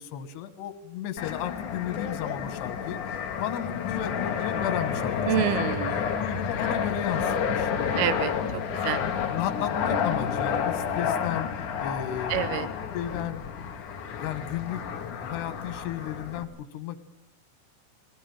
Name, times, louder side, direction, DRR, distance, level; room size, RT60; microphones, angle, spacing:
voice 1, 0.0-3.0 3.4-5.7 6.2-7.8 9.3-11.5 11.8-12.5 12.9-13.7 14.2-17.0, left 10 dB, 85° left, 11 dB, 3.5 m, -34 dB
Fixed-wing aircraft airplane, 1.2-16.4, left 7 dB, 60° left, 3.0 m, -30 dB
voice 2, 5.3-6.0 7.9-9.0 12.3-12.7, right 11 dB, 75° right, 14 dB, 2.9 m, -28 dB
21.5 x 18.5 x 8.9 m, 0.80 s
omnidirectional pair, 4.6 m